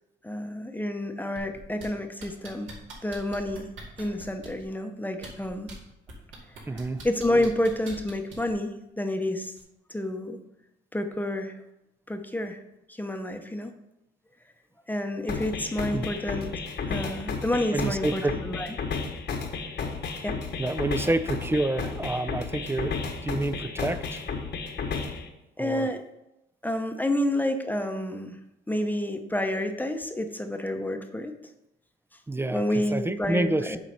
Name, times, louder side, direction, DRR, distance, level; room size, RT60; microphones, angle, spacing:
voice 1, 0.2-2.7 3.0-3.7 4.0-5.7 7.0-9.5 9.9-10.4 10.9-11.6 12.1-12.6 12.9-13.7 14.9-16.5 16.9-18.7 20.2-20.4 25.6-26.0 26.6-28.4 28.7-31.4 32.5-33.8, left 1 dB, 10° left, 6 dB, 0.8 m, -29 dB
sound 1, 1.4-1.9 2.2-4.6 5.1-5.7 6.1-8.5 9.6-9.7, right 3 dB, 75° right, 2.1 m, -44 dB
voice 2, 6.7-7.0 15.9-16.1 17.7-18.4 20.6-23.0 23.2-24.2 25.6-25.9 32.3-32.6 32.9-33.8, right 2 dB, 10° right, 12 dB, 0.4 m, -28 dB
sound 2, 15.3-25.3, left 5 dB, 60° left, 1.2 m, -33 dB
7.4 x 4.0 x 5.8 m, 0.90 s
cardioid pair, 90°, 20 cm